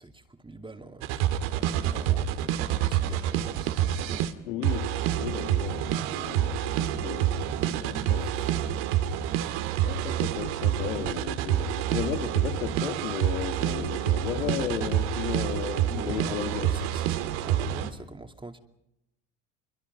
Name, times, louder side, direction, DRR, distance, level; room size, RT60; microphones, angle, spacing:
voice 1, 0.0-4.3 7.9-8.6 15.8-18.6, right 2 dB, 15° right, 2.5 m, -44 dB
sound 1, 1.0-4.3 4.6-17.9, right 11 dB, 70° right, 2.1 m, -28 dB
voice 2, 4.4-8.7 9.8-16.8, left 11 dB, 80° left, 2.1 m, -35 dB
26.5 x 23.0 x 5.5 m
hypercardioid pair, 75°, 38 cm